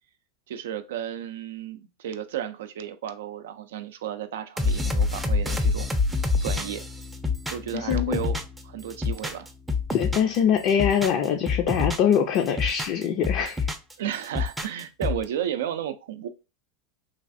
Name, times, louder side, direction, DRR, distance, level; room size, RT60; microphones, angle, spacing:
voice 1, 0.5-5.9 6.4-6.9 7.5-9.5 14.0-16.3, right 10 dB, 80° right, 0.4 m, -33 dB
sound 1, 4.6-8.6 8.9-10.4 10.7-12.1 12.5-13.9 14.2-15.2, left 3 dB, 10° right, 0.5 m, -26 dB
voice 2, 7.7-8.2 9.9-13.7, left 8 dB, 55° left, 0.4 m, -23 dB
3.1 x 2.3 x 2.5 m
hypercardioid pair, 110°, 0 cm